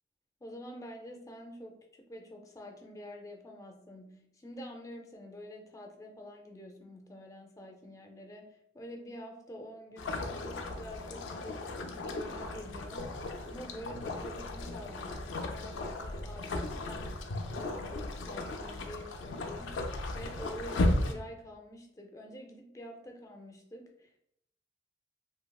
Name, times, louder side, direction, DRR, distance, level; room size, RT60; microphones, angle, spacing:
voice 1, 0.4-17.2 17.5-19.9 20.1-24.2, equal, 20° left, 2 dB, 0.4 m, -47 dB
sound 1, 10.0-21.1, left 2 dB, 90° left, 0.4 m, -35 dB
3.2 x 2.7 x 2.2 m, 0.75 s
head